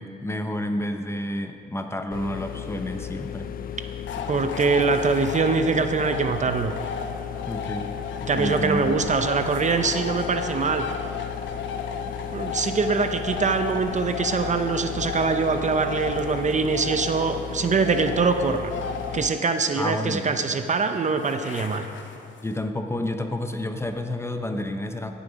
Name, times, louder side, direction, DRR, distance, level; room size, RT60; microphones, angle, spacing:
voice 1, 0.0-3.5 7.4-7.9 8.2-8.9 19.8-20.3 22.4-25.1, left 1 dB, 15° left, 6 dB, 0.8 m, -30 dB
sound 1, 2.1-19.3, left 9 dB, 45° left, 0.5 m, -35 dB
sound 2, 4.1-22.6, left 5 dB, 70° left, 1.0 m, -35 dB
voice 2, 4.3-6.7 8.3-10.9 12.3-18.7 19.1-21.9, right 4 dB, 35° right, 8 dB, 0.7 m, -23 dB
16.0 x 7.2 x 5.2 m, 2.6 s
cardioid pair, 90°, 20 cm